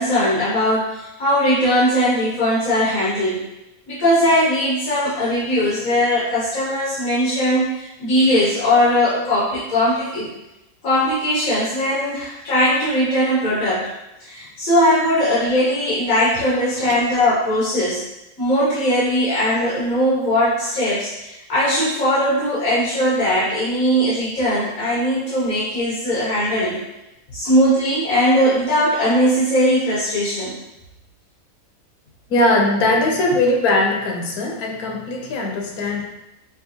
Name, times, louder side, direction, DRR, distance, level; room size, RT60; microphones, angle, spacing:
voice 1, 0.0-3.4 3.9-10.3 10.8-13.9 14.2-18.0 18.4-26.8 27.3-30.5, equal, 65° left, -10 dB, 1.5 m, -19 dB
voice 2, 32.3-36.1, left 2 dB, 85° left, 0 dB, 1.2 m, -20 dB
5.3 x 2.4 x 2.8 m, 0.92 s
omnidirectional pair, 1.5 m